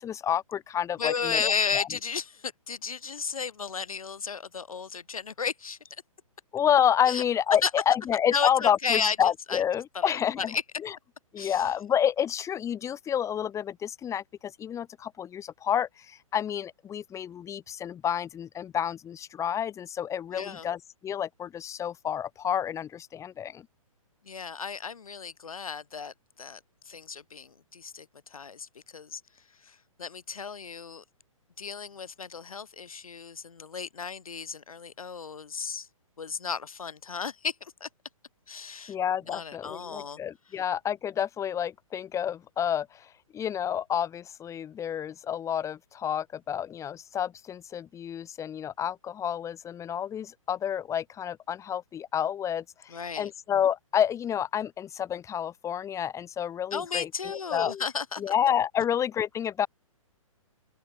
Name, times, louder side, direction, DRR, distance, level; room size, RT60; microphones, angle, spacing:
voice 1, 0.0-1.9 6.5-10.6 10.8-10.9 11.3-23.7 38.9-43.1 43.3-57.8 58.2-59.7, left 9 dB, 15° left, 3.4 m, -29 dB
voice 2, 1.0-5.8 7.1-7.2 7.6-7.7 8.3-9.2 9.5-9.6 9.9-10.6 11.4-11.6 20.3-20.7 24.3-26.6 26.9-28.1 28.3-29.2 29.6-31.0 31.6-35.9 36.2-37.9 38.5-39.0 39.3-40.2 52.9-53.3 56.7-58.2, left 6 dB, 75° left, 6.9 m, -33 dB
open air
hypercardioid pair, 130°, 18 cm